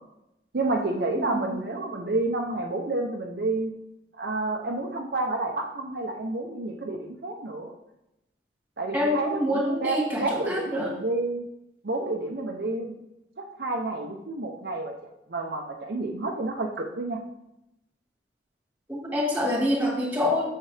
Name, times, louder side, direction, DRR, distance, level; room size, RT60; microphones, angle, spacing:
voice 1, 0.5-3.7 4.2-7.7 8.8-11.4 11.8-12.9 13.6-14.9 15.3-17.2, right 2 dB, 60° right, 1 dB, 0.7 m, -29 dB
voice 2, 1.2-1.6 8.9-10.9 18.9-20.5, left 1 dB, 10° right, -1 dB, 1.7 m, -26 dB
7.4 x 6.7 x 3.3 m, 0.88 s
head